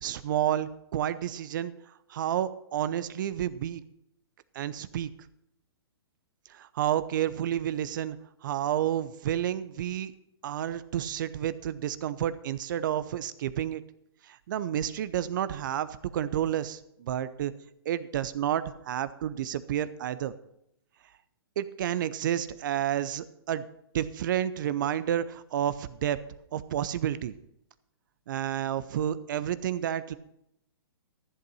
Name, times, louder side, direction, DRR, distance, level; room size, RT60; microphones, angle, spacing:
voice 1, 0.0-1.7 2.1-3.8 4.5-5.1 6.5-8.2 8.4-10.1 10.4-13.8 14.2-17.5 17.8-20.3 21.6-23.6 23.9-26.2 26.5-27.3 28.3-30.1, right 11 dB, 55° right, 15 dB, 0.8 m, -30 dB
14.0 x 8.0 x 5.6 m, 0.76 s
hypercardioid pair, 125°, 13 cm